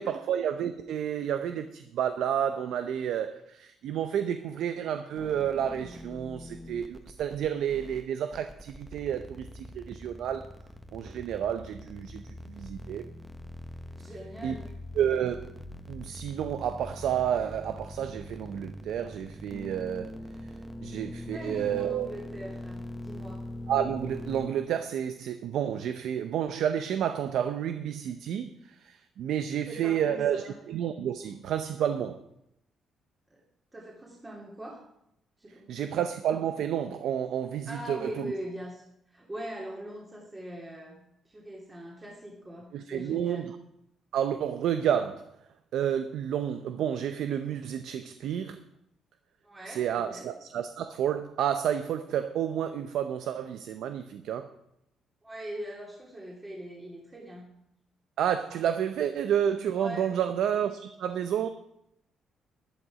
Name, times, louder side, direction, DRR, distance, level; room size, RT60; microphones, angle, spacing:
voice 1, 0.0-10.5 10.9-13.0 14.4-14.6 15.0-15.5 15.9-20.1 20.8-22.1 23.7-32.2 35.7-38.3 42.7-43.5 44.1-45.3 45.7-48.6 49.7-54.5 58.2-61.5, right 9 dB, 80° right, 9 dB, 0.7 m, -30 dB
sound 1, 5.2-24.5, left 1 dB, ahead, 1.2 m, -43 dB
voice 2, 13.9-14.7 20.8-20.9 21.3-23.4 29.7-30.5 33.3-33.4 33.7-34.8 35.4-35.9 37.7-41.0 41.2-43.5 49.4-50.2 55.2-57.5 59.7-60.1, right 1 dB, 20° right, -3 dB, 3.0 m, -41 dB
11.5 x 11.5 x 4.9 m, 0.79 s
cardioid pair, 90°, 0 cm